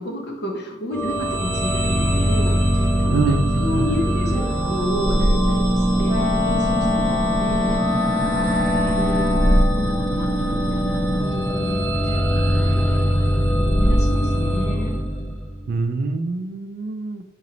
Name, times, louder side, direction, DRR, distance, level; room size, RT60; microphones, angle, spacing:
voice 1, 0.0-7.8 8.2-9.4 9.7-11.2 11.5-14.9, left 1 dB, 60° left, 0 dB, 0.8 m, -31 dB
sound 1, 0.9-15.6, equal, 5° left, 0.5 m, -21 dB
voice 2, 3.1-3.4 3.7-3.8 15.7-17.2, right 3 dB, 55° right, 9 dB, 0.3 m, -24 dB
Wind instrument woodwind instrument, 6.1-9.8, left 4 dB, 15° right, 0.8 m, -25 dB
3.0 x 3.0 x 3.8 m, 0.89 s
head